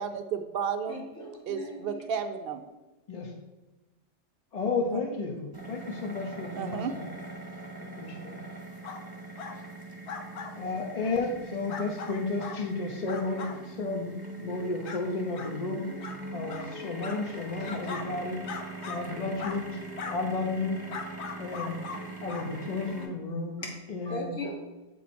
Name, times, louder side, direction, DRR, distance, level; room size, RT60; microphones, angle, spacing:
voice 1, 0.0-1.0 1.5-2.6 6.5-6.9, right 7 dB, 65° right, 8 dB, 0.6 m, -32 dB
voice 2, 0.9-2.0 24.1-24.5, left 2 dB, 85° left, -4 dB, 1.9 m, -38 dB
voice 3, 4.5-7.2 7.8-8.4 10.6-15.9 16.3-18.4 18.8-19.7 20.1-20.9 21.4-21.8 22.2-24.4, left 3 dB, 40° left, 1 dB, 0.6 m, -33 dB
sound 1, 5.5-23.1, right 2 dB, 20° right, 1.1 m, -42 dB
sound 2, 8.8-9.0 9.4-9.6 10.1-10.5 11.0-11.1 11.7-12.6 13.1-13.6 14.1-14.2 14.8-15.0 15.3-15.5 16.0-16.2 16.5-16.7 17.0-18.1 18.4-19.0 19.4-19.6 20.0-20.2 20.9-22.0 22.3-22.5 23.0-23.1, left 5 dB, 65° left, 1.0 m, -39 dB
7.5 x 4.2 x 4.2 m, 1.1 s
omnidirectional pair, 1.3 m